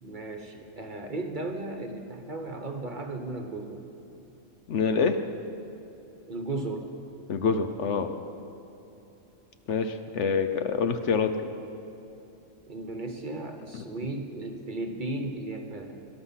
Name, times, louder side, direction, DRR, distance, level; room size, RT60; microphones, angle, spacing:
voice 1, 0.0-3.8 6.3-6.9 12.7-16.1, right 2 dB, 40° right, 5 dB, 1.1 m, -35 dB
voice 2, 4.7-5.2 7.3-8.1 9.7-11.3 13.7-13.8, left 5 dB, 60° left, 8 dB, 1.0 m, -26 dB
18.5 x 12.0 x 5.7 m, 3.0 s
omnidirectional pair, 1.4 m